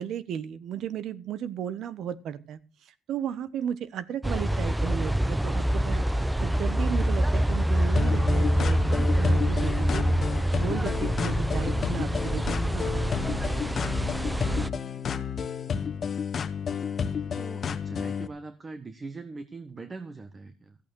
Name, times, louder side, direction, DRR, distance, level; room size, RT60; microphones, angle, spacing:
voice 1, 0.0-2.6 3.1-10.0 10.5-13.4, right 9 dB, 75° right, 17 dB, 1.2 m, -35 dB
sound 1, 4.2-14.7, right 1 dB, 10° right, 0.6 m, -26 dB
sound 2, 8.0-18.3, left 6 dB, 50° left, 1.1 m, -31 dB
voice 2, 17.2-20.8, right 3 dB, 30° right, 11 dB, 1.4 m, -42 dB
14.5 x 8.5 x 6.3 m, 0.35 s
cardioid pair, 90°, 0 cm